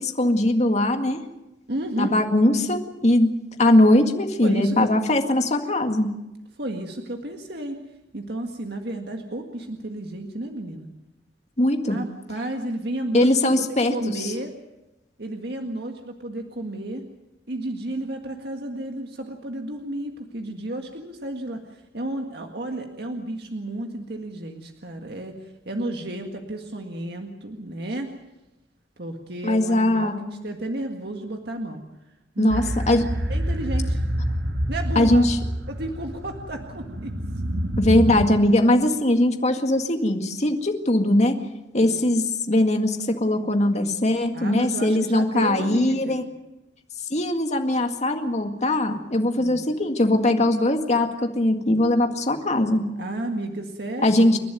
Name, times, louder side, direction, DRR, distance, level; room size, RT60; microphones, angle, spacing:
voice 1, 0.2-1.2 2.0-3.3 3.6-6.1 11.6-12.0 13.1-14.1 29.4-30.2 32.4-33.0 35.0-35.4 37.8-41.4 41.7-46.2 47.1-52.8 54.0-54.4, left 1 dB, 40° left, 5 dB, 2.0 m, -20 dB
voice 2, 1.7-2.2 4.4-4.9 6.6-7.8 8.1-10.9 11.9-14.5 15.2-17.0 17.5-28.1 29.0-31.8 32.4-32.7 33.3-34.0 34.7-35.3 35.7-37.1 41.8-42.0 44.3-46.3 49.4-49.6 53.0-54.4, right 1 dB, 65° right, 3 dB, 1.8 m, -32 dB
sound 1, 32.5-38.2, equal, 85° right, 2.0 m, -27 dB
29.5 x 11.5 x 9.4 m, 0.99 s
head